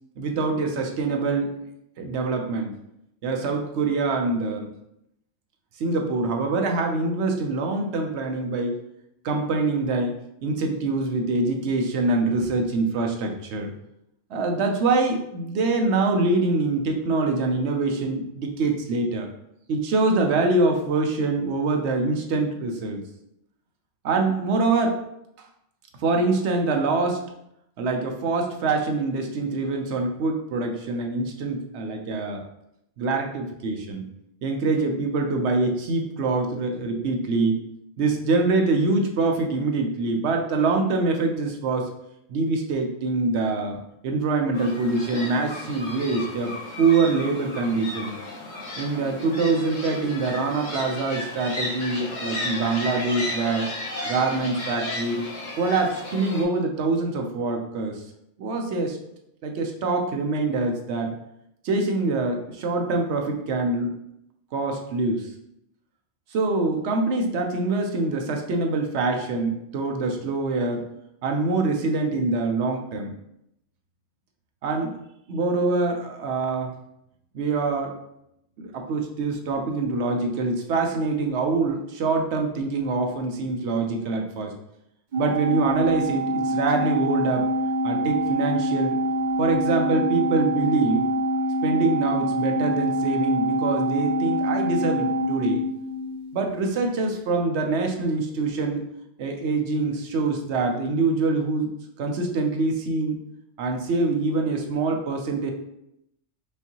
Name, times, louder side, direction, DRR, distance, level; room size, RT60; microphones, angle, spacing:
voice 1, 0.2-1.5 2.0-2.7 3.2-4.7 5.8-8.8 9.2-10.2 10.4-13.7 14.3-19.3 19.7-23.0 24.0-25.0 25.4-25.5 26.0-27.2 27.8-32.4 33.0-34.0 34.4-37.6 38.0-41.9 42.3-48.1 48.8-53.7 54.0-55.2 55.6-58.0 58.4-59.0 59.4-61.1 61.6-63.9 64.5-65.3 66.3-70.8 71.2-73.1 74.6-75.0 75.3-76.7 77.3-78.0 78.6-84.5 85.2-87.5 87.8-89.0 89.4-91.1 91.6-95.6 96.3-98.8 99.2-101.7 102.0-103.2 103.6-105.5, right 3 dB, 65° right, 3 dB, 0.7 m, -24 dB
sound 1, 44.5-56.4, left 2 dB, 40° left, 0.8 m, -34 dB
Organ, 85.1-96.4, equal, 85° right, 0.4 m, -25 dB
5.2 x 2.7 x 2.8 m, 0.80 s
omnidirectional pair, 1.5 m